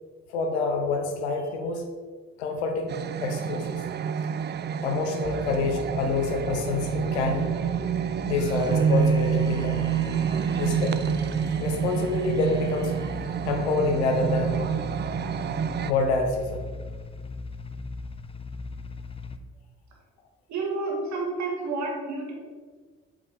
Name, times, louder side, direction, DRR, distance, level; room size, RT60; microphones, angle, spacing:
voice 1, 0.3-1.8 2.4-3.8 4.8-7.5 8.2-9.9 10.6-11.1 11.6-12.9 13.5-14.8 15.8-16.6, left 3 dB, 85° left, 4 dB, 0.8 m, -27 dB
sound 1, 2.9-15.9, right 7 dB, 35° right, 0.4 m, -28 dB
sound 2, 5.2-19.4, left 5 dB, 15° left, 0.5 m, -39 dB
sound 3, 8.4-13.6, right 1 dB, 10° right, 1.2 m, -43 dB
voice 2, 20.5-22.4, right 3 dB, 60° right, -1 dB, 1.9 m, -30 dB
8.0 x 5.0 x 3.5 m, 1.5 s
hypercardioid pair, 45°, 33 cm